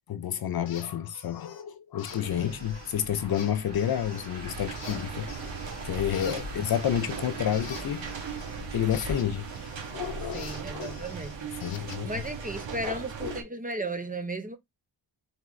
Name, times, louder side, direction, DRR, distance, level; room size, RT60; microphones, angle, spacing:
voice 1, 0.1-5.3 5.8-8.1 8.7-9.5 9.9-11.0 11.6-12.1 12.8-12.9 13.2-13.4, left 10 dB, 55° left, 0.5 m, -30 dB
sound 1, 0.7-0.9 1.1-1.6 2.0-2.9 3.3-4.3 4.8-5.9 6.1-9.9 10.3-12.7, left 7 dB, 70° left, 0.9 m, -47 dB
sound 2, 2.1-10.7, right 1 dB, 65° right, 1.9 m, -42 dB
sound 3, 4.5-13.4, right 6 dB, 90° right, 1.2 m, -39 dB
voice 2, 10.3-14.6, right 2 dB, 20° right, 0.6 m, -36 dB
3.7 x 3.6 x 3.1 m
wide cardioid pair, 155°, 45 cm